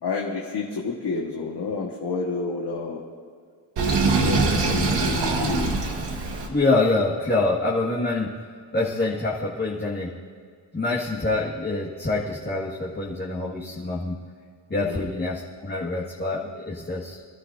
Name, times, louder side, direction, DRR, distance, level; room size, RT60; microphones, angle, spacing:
voice 1, 0.0-3.0 4.2-5.7 14.9-15.0, left 4 dB, 65° left, -3 dB, 1.7 m, -29 dB
Sink (filling or washing), 3.8-6.5, right 3 dB, 85° right, 1.9 m, -23 dB
voice 2, 6.5-8.3 8.7-10.1 10.7-14.2 14.7-17.2, left 2 dB, 25° left, -6 dB, 1.9 m, -25 dB
24.5 x 13.5 x 2.7 m, 2.1 s
wide cardioid pair, 100°, 42 cm